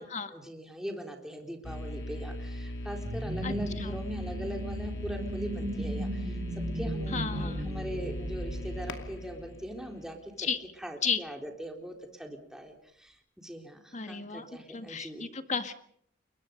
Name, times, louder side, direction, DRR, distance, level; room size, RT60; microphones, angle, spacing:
voice 1, 0.0-6.4 6.7-10.5 10.8-15.3, equal, 5° right, 2 dB, 3.8 m, -41 dB
sound 1, 1.6-10.5, left 1 dB, 80° left, 2.6 m, -39 dB
sound 2, 3.0-9.5, right 1 dB, 60° right, 5.8 m, -37 dB
voice 2, 3.4-4.0 7.1-7.7 10.4-10.6 11.0-11.2 13.9-15.7, left 6 dB, 40° left, 8 dB, 1.8 m, -34 dB
29.5 x 22.5 x 5.3 m, 0.65 s
head